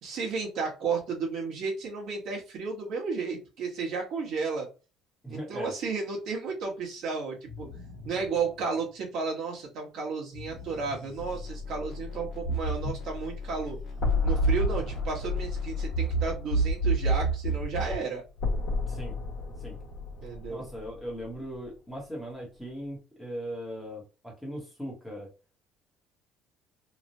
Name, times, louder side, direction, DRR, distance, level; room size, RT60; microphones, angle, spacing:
voice 1, 0.0-4.7 5.3-7.7 8.0-13.8 14.2-18.2 20.2-20.7, right 4 dB, 55° right, -1 dB, 1.0 m, -33 dB
voice 2, 5.2-5.7 18.9-19.1 19.6-19.8 20.5-25.3, equal, 5° left, -2 dB, 0.9 m, -39 dB
sound 1, 7.5-9.2 10.3-12.0, left 3 dB, 80° right, 0.9 m, -46 dB
sound 2, 11.2-18.0, right 3 dB, 40° left, 1.4 m, -30 dB
sound 3, 14.0-18.0 18.4-21.7, left 4 dB, 60° left, 1.4 m, -33 dB
3.1 x 2.1 x 2.6 m, 0.32 s
cardioid pair, 170°, 0 cm